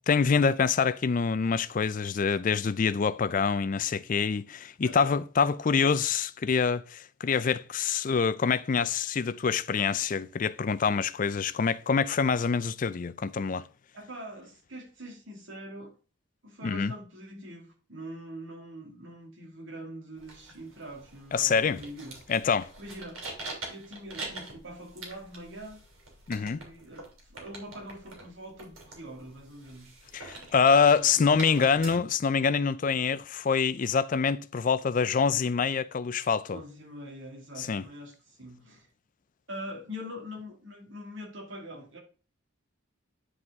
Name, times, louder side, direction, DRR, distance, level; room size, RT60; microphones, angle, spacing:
voice 1, 0.1-13.7 16.6-16.9 21.3-21.8 22.3-22.7 26.3-26.6 30.1-36.6 37.6-37.8, left 5 dB, 40° left, 0.4 m, -26 dB
voice 2, 4.8-5.2 13.9-15.9 16.4-22.1 22.8-23.2 23.7-25.8 26.3-30.0 31.0-31.8 36.5-38.9 39.5-42.0, equal, 65° right, 2.3 m, -44 dB
sound 1, 20.2-32.0, right 2 dB, 90° right, 3.3 m, -45 dB
9.5 x 4.9 x 3.6 m
head